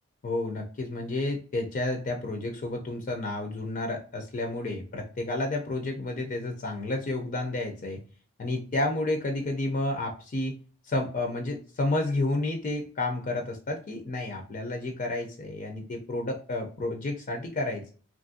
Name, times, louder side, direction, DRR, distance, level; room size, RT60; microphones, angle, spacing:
voice 1, 0.2-8.0 8.4-10.5 10.8-17.9, left 2 dB, 40° left, 3 dB, 0.4 m, -31 dB
3.0 x 2.4 x 2.5 m, 0.39 s
head